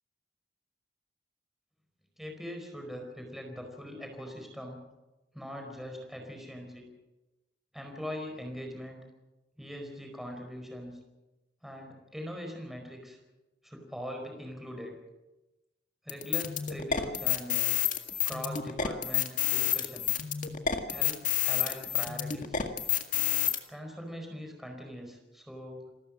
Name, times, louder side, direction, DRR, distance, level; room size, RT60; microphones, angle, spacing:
voice 1, 2.2-4.8 5.3-6.8 7.7-9.0 9.6-11.0 11.6-13.2 13.6-14.9 16.0-17.8 18.2-20.2 20.9-22.6 23.7-25.9, equal, ahead, 2 dB, 4.8 m, -41 dB
sound 1, 16.1-23.6, left 10 dB, 50° left, 1.9 m, -29 dB
28.5 x 13.5 x 7.5 m, 1.0 s
head